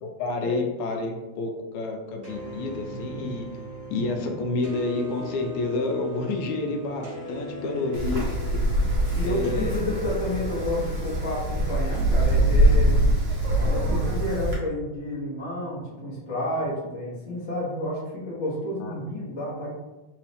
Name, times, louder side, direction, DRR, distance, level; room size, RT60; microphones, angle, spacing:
voice 1, 0.0-3.5 3.9-8.3 9.2-9.8 18.8-18.9, left 3 dB, 80° left, 2 dB, 2.0 m, -29 dB
sound 1, 2.2-11.8, right 1 dB, 30° right, 1.0 m, -39 dB
voice 2, 7.6-8.0 9.1-13.0 13.6-19.7, left 1 dB, 50° left, -6 dB, 0.7 m, -31 dB
Wind, 7.9-14.5, right 1 dB, 75° right, 0.8 m, -23 dB
3.9 x 3.8 x 3.3 m, 1.1 s
omnidirectional pair, 3.4 m